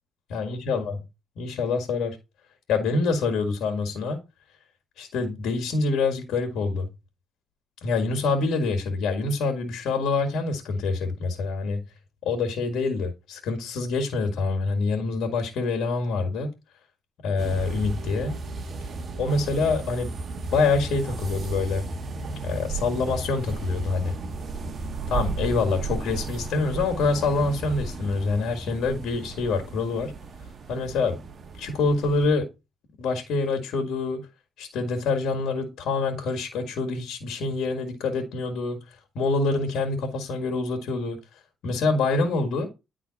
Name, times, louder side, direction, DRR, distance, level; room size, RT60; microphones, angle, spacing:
voice 1, 0.3-1.0 1.4-2.2 2.7-4.2 5.0-6.9 7.8-11.8 12.2-16.5 17.2-18.4 19.2-20.1 20.5-21.8 22.4-24.1 25.1-30.1 30.7-31.2 31.6-32.5 33.0-34.3 34.6-38.8 39.2-41.2 41.6-42.7, left 3 dB, 75° left, 1.8 m, -26 dB
sound 1, 17.4-32.3, right 4 dB, 45° right, 1.2 m, -34 dB
9.8 x 3.8 x 4.0 m
cardioid pair, 90°, 0 cm